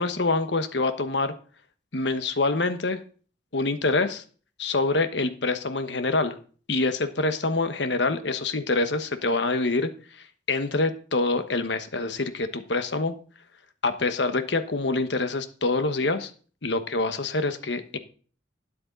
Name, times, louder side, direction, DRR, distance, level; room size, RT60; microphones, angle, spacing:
voice 1, 0.0-1.3 1.9-3.0 3.5-4.2 4.6-6.4 6.7-9.9 10.5-13.1 13.8-16.3 16.6-18.0, left 3 dB, 70° left, 10 dB, 1.2 m, -25 dB
12.5 x 10.0 x 3.9 m, 0.41 s
head